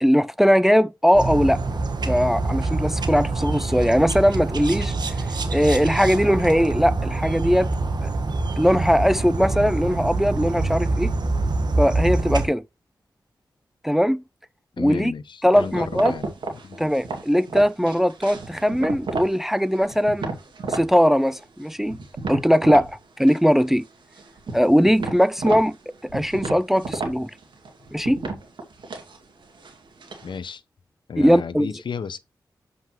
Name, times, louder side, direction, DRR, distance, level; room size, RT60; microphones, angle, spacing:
voice 1, 0.0-1.6 2.1-4.9 5.5-7.7 8.0-8.1 8.6-11.1 11.8-12.6 13.8-14.2 14.8-15.1 15.4-16.1 16.8-20.3 20.7-22.0 22.3-23.8 24.5-25.8 26.1-27.3 27.9-28.2 31.2-31.7, equal, 5° right, 0.5 m, -20 dB
sound 1, 1.1-12.5, right 3 dB, 60° right, 1.3 m, -25 dB
voice 2, 14.8-16.3 16.6-16.9 30.2-30.6 31.1-32.2, left 6 dB, 70° left, 0.7 m, -33 dB
sound 2, 15.6-19.4 19.7-20.9 21.3-22.9 23.2-23.8 24.1-30.4, right 3 dB, 75° right, 2.3 m, -33 dB
7.5 x 5.5 x 3.0 m
cardioid pair, 50°, 8 cm